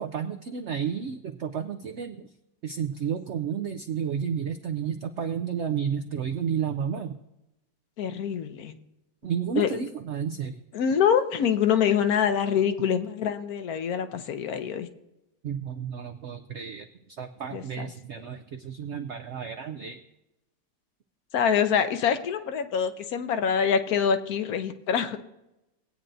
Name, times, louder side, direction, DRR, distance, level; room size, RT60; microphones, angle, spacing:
voice 1, 0.0-2.3 2.6-7.2 9.2-10.6 15.4-16.9 17.2-20.0, right 7 dB, 75° right, 7 dB, 0.6 m, -31 dB
voice 2, 8.0-8.8 9.6-9.8 10.7-14.9 17.5-17.9 21.3-25.2, left 8 dB, 70° left, 9 dB, 1.1 m, -25 dB
19.5 x 8.7 x 2.6 m, 0.93 s
omnidirectional pair, 1.8 m